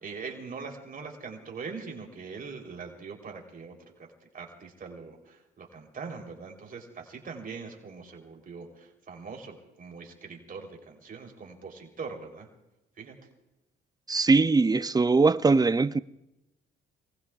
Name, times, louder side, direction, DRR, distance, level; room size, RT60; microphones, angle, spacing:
voice 1, 0.0-12.5 13.0-13.1, right 5 dB, 45° right, 3.7 m, -42 dB
voice 2, 14.1-16.0, right 3 dB, 20° right, 0.5 m, -21 dB
29.0 x 20.0 x 2.4 m
cardioid pair, 90°, 20 cm